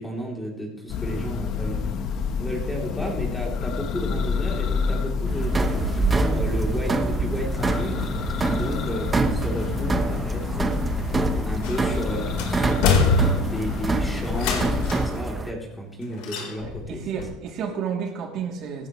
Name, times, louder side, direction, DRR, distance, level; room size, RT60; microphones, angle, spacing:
voice 1, 0.0-1.9 2.4-8.0 8.5-10.8 11.4-17.0, equal, 5° left, -1 dB, 3.2 m, -33 dB
Church bell, 0.9-15.2, left 6 dB, 45° left, 1.1 m, -29 dB
sound 1, 5.2-15.5, right 3 dB, 15° right, 1.0 m, -26 dB
sound 2, 11.6-12.0 12.4-13.7 14.3-15.2 16.2-16.9 17.2-17.3, left 4 dB, 75° left, 4.0 m, -23 dB
voice 2, 16.6-18.9, right 7 dB, 50° right, 0 dB, 3.0 m, -31 dB
17.5 x 14.5 x 3.2 m, 0.93 s
cardioid pair, 145°, 0 cm